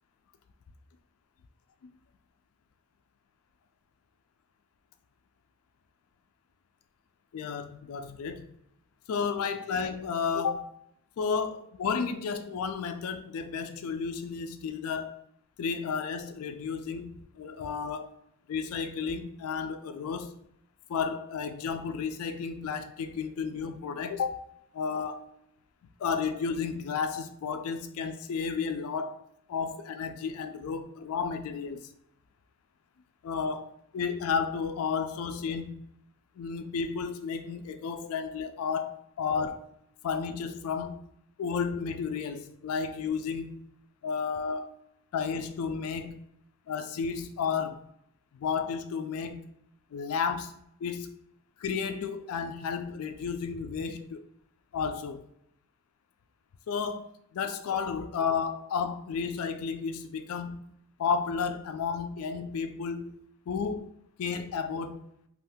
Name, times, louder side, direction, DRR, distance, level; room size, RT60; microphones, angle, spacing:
voice 1, 7.3-8.5 9.1-10.8 11.2-15.2 15.6-18.1 18.5-20.4 20.9-24.4 24.7-25.3 26.0-29.2 29.5-31.9 33.2-35.9 36.4-39.7 40.0-41.1 41.4-43.6 44.0-44.7 45.1-46.2 46.7-47.8 48.3-49.5 49.9-50.5 50.8-51.1 51.6-54.3 54.7-55.3 56.7-63.9 64.2-65.1, left 6 dB, 70° left, 0.3 m, -32 dB
2.6 x 2.4 x 3.5 m
head